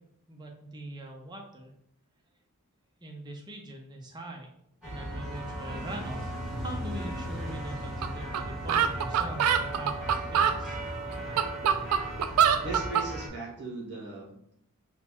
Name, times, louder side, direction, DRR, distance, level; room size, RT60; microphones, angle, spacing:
voice 1, 0.3-1.7 3.0-4.5 4.8-6.3 6.6-10.8, right 1 dB, 20° right, 1 dB, 0.5 m, -42 dB
sound 1, 4.8-13.3, right 1 dB, ahead, 1.4 m, -36 dB
sound 2, 8.0-8.1 8.3-8.4 8.7-10.6 11.1-13.1, right 8 dB, 75° right, 0.3 m, -24 dB
voice 2, 12.6-14.5, right 3 dB, 50° right, -3 dB, 1.1 m, -38 dB
4.3 x 2.3 x 4.3 m, 0.73 s
head